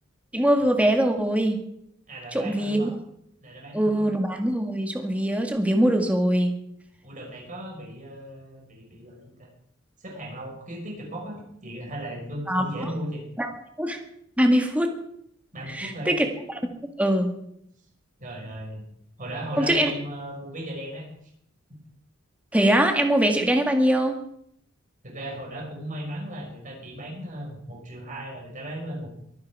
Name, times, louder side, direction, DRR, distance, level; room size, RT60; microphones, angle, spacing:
voice 1, 0.3-1.6 2.3-2.9 3.7-6.5 12.5-12.7 13.4-13.5 13.8-14.0 14.4-14.9 15.7-16.3 17.0-17.3 19.6-19.9 22.5-24.2, right 1 dB, 5° right, 4 dB, 1.8 m, -22 dB
voice 2, 2.1-2.9 3.4-4.1 7.0-9.5 10.0-13.2 15.5-16.1 18.2-18.9 19.2-21.1 25.0-29.1, right 1 dB, 40° right, -1 dB, 5.5 m, -36 dB
23.5 x 9.6 x 4.8 m, 0.71 s
head